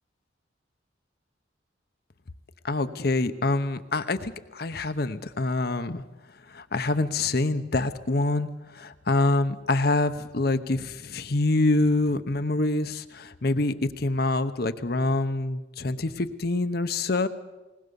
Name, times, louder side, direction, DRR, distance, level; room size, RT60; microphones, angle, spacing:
voice 1, 2.6-6.0 6.5-17.3, left 2 dB, 55° left, 10 dB, 0.9 m, -26 dB
20.0 x 20.0 x 6.9 m, 1.1 s
head